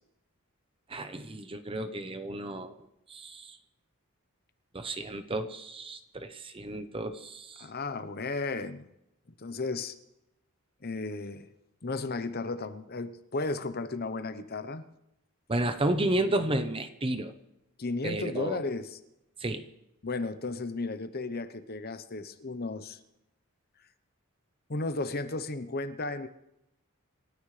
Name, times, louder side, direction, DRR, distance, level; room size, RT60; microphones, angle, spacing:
voice 1, 0.9-2.8 3.1-3.6 4.7-7.7 15.5-17.3 18.0-18.6 19.4-19.6, right 1 dB, 25° right, 9 dB, 0.9 m, -32 dB
voice 2, 7.6-8.8 9.4-10.0 10.8-11.5 11.8-14.8 17.8-19.0 20.0-23.0 24.7-26.3, left 3 dB, 45° left, 11 dB, 0.9 m, -34 dB
27.5 x 13.5 x 3.3 m, 0.85 s
head